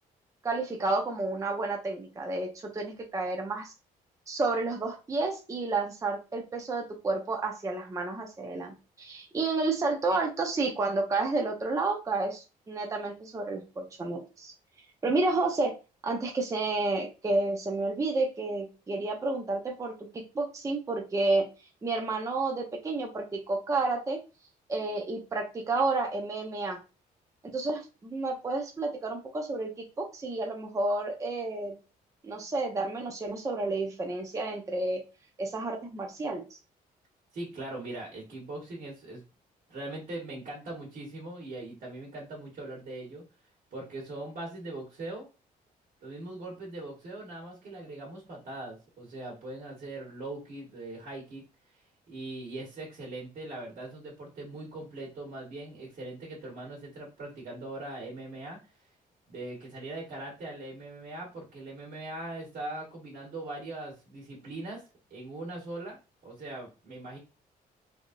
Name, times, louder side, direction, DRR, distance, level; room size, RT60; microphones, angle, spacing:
voice 1, 0.4-3.7 4.3-14.5 15.0-15.8 16.0-21.5 21.8-24.2 24.7-26.8 27.5-31.8 32.2-35.0 35.4-36.6, right 3 dB, 20° right, 1 dB, 0.6 m, -30 dB
voice 2, 37.3-39.2 39.7-43.2 43.7-45.3 46.0-51.4 52.1-58.6 59.3-67.2, right 2 dB, 60° right, -2 dB, 1.4 m, -41 dB
3.4 x 2.6 x 2.6 m, 0.30 s
cardioid pair, 110°, 15 cm